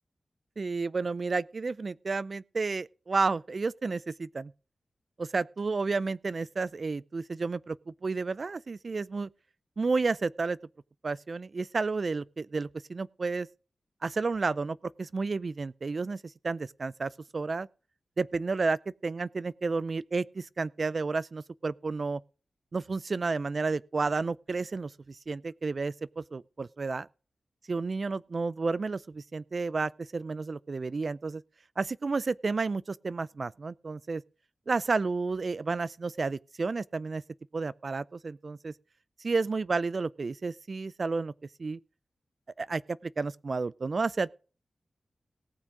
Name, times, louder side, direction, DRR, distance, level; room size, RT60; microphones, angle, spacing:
voice 1, 0.6-4.5 5.2-9.3 9.8-10.6 11.0-13.5 14.0-17.7 18.2-22.2 22.7-27.1 27.7-31.4 31.8-34.2 34.7-37.2 37.5-38.7 39.2-41.3 41.6-41.8 42.6-44.3, right 4 dB, 55° right, 0.4 m, -31 dB
18.0 x 6.3 x 4.7 m
cardioid pair, 50°, 0 cm